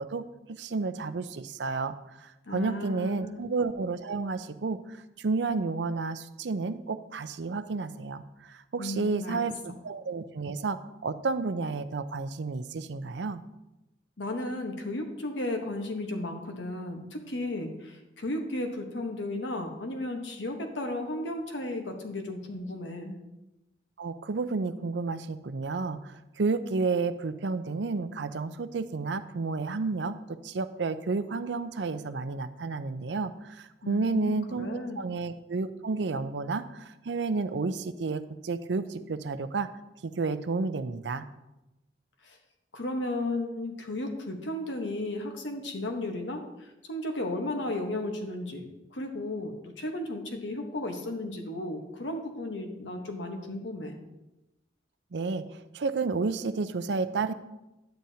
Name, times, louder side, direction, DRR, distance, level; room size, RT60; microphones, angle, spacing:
voice 1, 0.0-13.4 24.0-39.7 40.0-41.3 55.1-57.3, right 4 dB, 75° right, 11 dB, 0.5 m, -31 dB
voice 2, 2.5-3.4 8.8-9.4 14.2-23.2 33.8-35.0 42.2-42.4 42.7-53.9, left 1 dB, 85° left, 4 dB, 1.1 m, -34 dB
10.5 x 9.0 x 2.8 m, 0.96 s
head